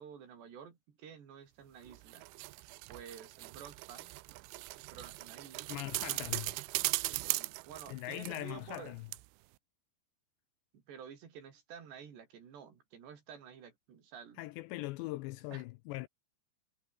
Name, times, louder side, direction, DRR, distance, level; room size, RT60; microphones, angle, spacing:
voice 1, 0.0-2.3 2.9-4.1 4.8-5.7 7.1-9.0 10.9-14.4 15.5-15.6, right 7 dB, 65° right, 5.7 m, -51 dB
sound 1, 1.9-8.9 9.1-9.2, right 22 dB, 85° right, 3.1 m, -39 dB
voice 2, 5.7-6.6 7.9-9.1 14.4-16.1, left 19 dB, 85° left, 2.6 m, -41 dB
omnidirectional pair, 5.5 m